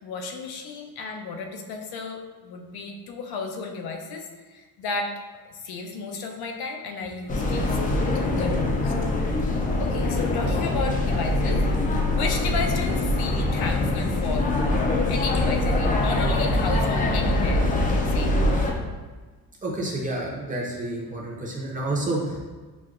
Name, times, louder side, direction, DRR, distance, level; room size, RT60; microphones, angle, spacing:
voice 1, 0.0-5.1 5.5-8.9 9.8-11.6 12.2-14.5 15.1-18.5, left 4 dB, 75° left, 3 dB, 0.6 m, -33 dB
sound 1, 7.3-18.7, left 2 dB, 25° left, 0.3 m, -23 dB
voice 2, 19.6-22.4, right 2 dB, 20° right, -3 dB, 0.7 m, -29 dB
5.9 x 2.2 x 2.5 m, 1.3 s
cardioid pair, 150°, 38 cm